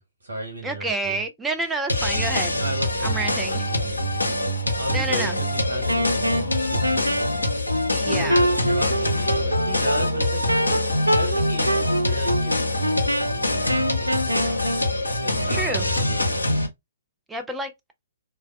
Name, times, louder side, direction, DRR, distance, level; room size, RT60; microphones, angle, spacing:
voice 1, 0.0-1.2 2.5-3.9 4.7-7.4 7.9-14.7 15.1-16.3, equal, 65° right, 1.1 m, -35 dB
voice 2, 0.6-2.5 3.0-3.7 4.9-5.4 7.9-8.4 15.5-15.9 17.3-17.7, right 2 dB, 10° right, 0.4 m, -29 dB
sound 1, 1.9-16.7, left 1 dB, 85° left, 0.6 m, -24 dB
Wind instrument woodwind instrument, 5.9-14.9, equal, 90° right, 0.4 m, -25 dB
3.3 x 2.2 x 2.3 m
figure-of-eight pair, 120°, 0 cm